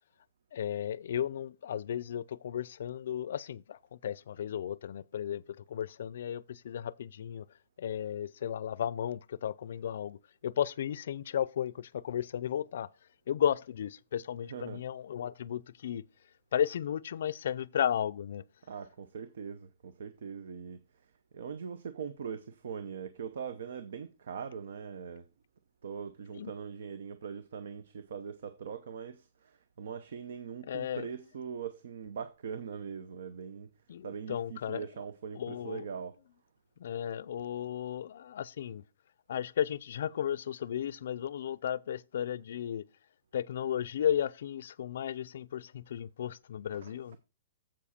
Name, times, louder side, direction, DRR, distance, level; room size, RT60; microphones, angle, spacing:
voice 1, 0.5-7.5 7.8-12.9 13.3-16.1 16.5-18.4 26.4-26.5 30.6-31.1 33.9-34.9 35.3-35.8 36.8-38.8 39.3-42.9 43.3-47.2, left 9 dB, 65° left, 0.4 m, -34 dB
voice 2, 14.4-14.8 18.7-20.8 21.3-25.3 25.8-33.7 34.0-36.2 46.7-47.2, right 6 dB, 70° right, 0.8 m, -41 dB
7.5 x 7.2 x 4.3 m
hypercardioid pair, 165°, 0 cm